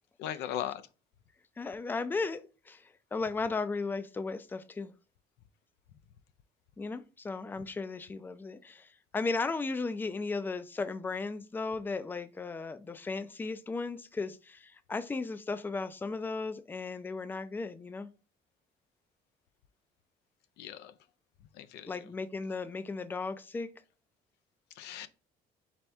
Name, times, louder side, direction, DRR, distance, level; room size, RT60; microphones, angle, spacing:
voice 1, 0.2-0.8 20.6-20.9 21.5-22.1 24.8-25.1, left 11 dB, 85° left, 0.5 m, -38 dB
voice 2, 1.6-4.9 6.8-18.1 21.9-23.7, left 3 dB, 10° left, 0.4 m, -36 dB
4.2 x 3.3 x 3.4 m
cardioid pair, 110°, 17 cm